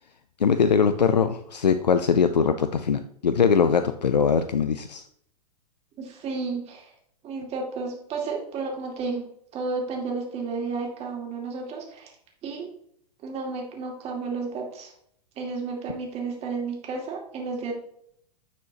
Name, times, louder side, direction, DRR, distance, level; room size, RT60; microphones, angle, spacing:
voice 1, 0.4-5.0, left 6 dB, 90° left, 10 dB, 0.4 m, -21 dB
voice 2, 6.0-6.9 7.2-9.2 9.5-12.1 12.4-12.7 13.2-14.9 15.4-17.7, right 4 dB, 30° right, 0 dB, 2.2 m, -32 dB
10.5 x 4.3 x 2.8 m, 0.69 s
figure-of-eight pair, 105°, 21 cm